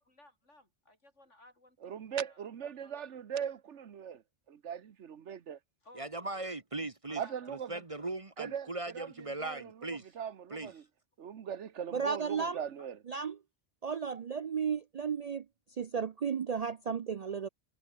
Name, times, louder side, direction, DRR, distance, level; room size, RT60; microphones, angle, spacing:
voice 1, 0.0-3.2 5.8-6.3 7.1-7.8 10.6-10.7 12.8-12.9, left 1 dB, 85° left, 7.2 m, -59 dB
voice 2, 1.8-4.2 4.5-5.6 7.2-7.7 8.4-8.7 8.9-9.1 9.4-9.7 10.1-10.8 11.2-13.0, right 8 dB, 80° right, 1.3 m, -39 dB
voice 3, 5.9-7.2 7.5-10.1 10.5-10.7, right 2 dB, 30° right, 1.2 m, -39 dB
voice 4, 11.9-12.6 13.1-13.4 13.8-15.4 15.8-17.5, right 6 dB, 50° right, 0.4 m, -34 dB
omnidirectional pair, 1.2 m